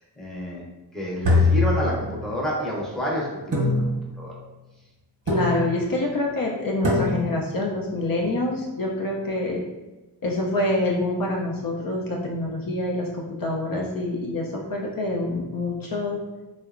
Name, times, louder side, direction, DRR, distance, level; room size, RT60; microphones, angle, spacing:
voice 1, 0.2-0.6 0.9-3.8 4.2-4.3, equal, ahead, -4 dB, 0.6 m, -29 dB
sound 1, 1.2-2.4 3.5-4.3 5.3-5.9 6.8-7.5, left 2 dB, 45° right, 0.8 m, -23 dB
voice 2, 5.3-9.6 10.2-13.1 13.4-16.2, left 2 dB, 55° left, -1 dB, 0.5 m, -26 dB
2.7 x 2.1 x 2.4 m, 1.1 s
cardioid pair, 55°, 42 cm